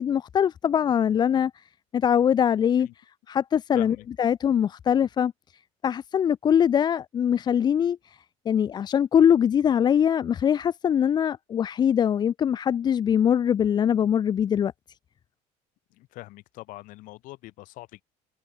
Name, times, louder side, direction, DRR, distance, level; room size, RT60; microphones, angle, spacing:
voice 1, 0.0-1.6 1.9-2.9 3.3-5.3 5.8-8.2 8.5-14.7, left 8 dB, 30° left, 0.5 m, -22 dB
voice 2, 3.7-4.1 15.9-18.0, left 19 dB, 65° left, 3.2 m, -43 dB
cardioid pair, 125°, 15 cm